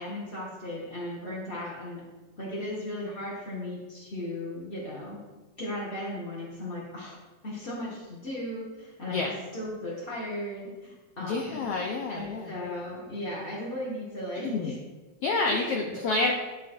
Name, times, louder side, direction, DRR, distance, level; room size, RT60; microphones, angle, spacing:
voice 1, 0.0-2.0 2.4-5.2 5.6-7.2 7.4-9.2 9.5-11.7 12.1-14.7 15.5-15.7, left 1 dB, 40° left, -7 dB, 0.8 m, -36 dB
voice 2, 11.2-12.5 14.4-14.7 15.2-16.3, left 3 dB, 75° left, 1 dB, 1.4 m, -28 dB
11.5 x 4.2 x 4.5 m, 1.2 s
omnidirectional pair, 3.6 m